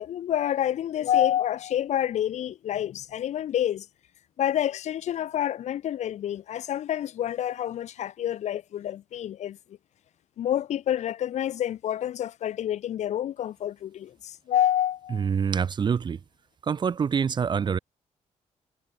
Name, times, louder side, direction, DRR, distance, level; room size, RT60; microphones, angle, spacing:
voice 1, 0.0-3.9 4.4-9.6 10.4-15.3, left 11 dB, 70° left, 1.6 m, -28 dB
voice 2, 15.1-16.2 16.6-17.8, right 6 dB, 35° right, 1.3 m, -26 dB
cardioid pair, 140°, 12 cm